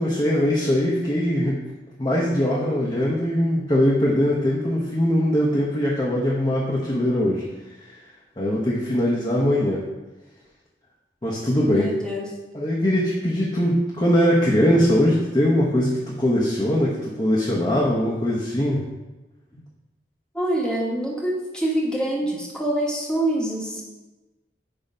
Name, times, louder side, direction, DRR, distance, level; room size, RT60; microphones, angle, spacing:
voice 1, 0.0-1.6 2.0-7.4 7.8-8.0 8.4-9.8 11.2-11.9 12.5-18.8, equal, 25° left, -6 dB, 0.9 m, -21 dB
voice 2, 11.6-12.4 20.3-23.8, right 1 dB, 5° left, -3 dB, 1.2 m, -25 dB
8.8 x 3.0 x 5.5 m, 1.2 s
head